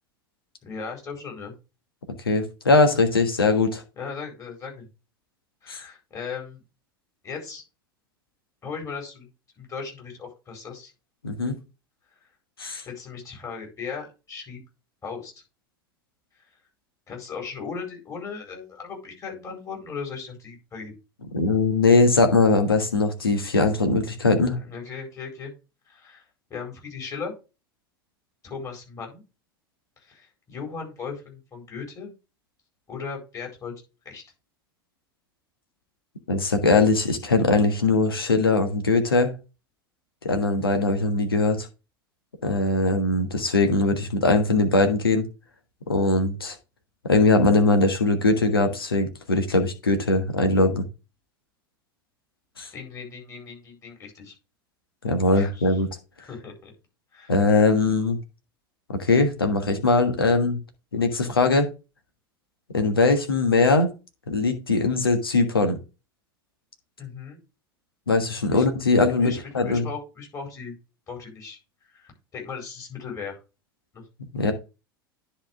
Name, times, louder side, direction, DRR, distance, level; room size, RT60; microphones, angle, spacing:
voice 1, 0.6-1.5 4.0-4.9 5.6-6.6 7.2-7.6 8.6-9.3 9.6-10.9 12.8-14.6 15.0-15.3 17.1-20.9 24.6-25.5 25.9-26.2 26.5-27.3 28.4-29.2 30.1-32.1 32.9-33.7 34.0-34.2 52.7-54.3 55.4-55.7 56.2-56.7 57.1-57.3 67.0-67.4 68.5-68.6 68.9-70.7 71.1-71.6 71.9-73.4 73.9-74.0, left 5 dB, 25° left, 1 dB, 4.6 m, -37 dB
voice 2, 2.3-3.8 5.7-5.8 11.2-11.6 12.6-12.8 21.3-24.6 36.3-39.3 40.2-41.7 42.4-45.2 45.9-46.5 47.0-50.8 52.6-52.7 55.0-55.9 57.3-58.2 59.0-60.6 60.9-61.7 62.7-63.9 64.3-65.8 68.1-69.8 74.3-74.5, left 3 dB, 80° left, 6 dB, 1.4 m, -21 dB
10.5 x 4.5 x 3.6 m, 0.29 s
figure-of-eight pair, 80°, 12 cm